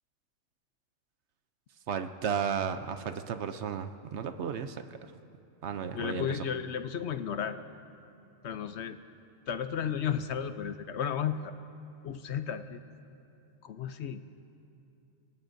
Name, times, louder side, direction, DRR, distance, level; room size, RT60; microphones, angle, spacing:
voice 1, 1.9-4.8 5.6-6.4, right 7 dB, 65° right, 9 dB, 0.9 m, -33 dB
voice 2, 5.9-7.6 8.4-9.0 9.5-11.5 12.0-12.8 13.6-14.2, left 8 dB, 65° left, 10 dB, 0.8 m, -33 dB
29.0 x 16.5 x 2.7 m, 2.7 s
omnidirectional pair, 1.4 m